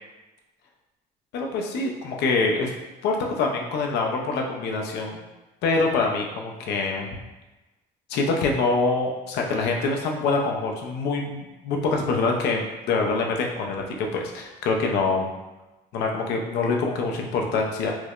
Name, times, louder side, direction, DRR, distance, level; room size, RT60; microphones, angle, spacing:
voice 1, 1.3-2.7 3.0-5.2 5.6-7.2 8.1-15.3 15.9-18.0, left 3 dB, 80° left, 1 dB, 0.6 m, -25 dB
4.6 x 2.1 x 2.4 m, 1.1 s
cardioid pair, 110°, 17 cm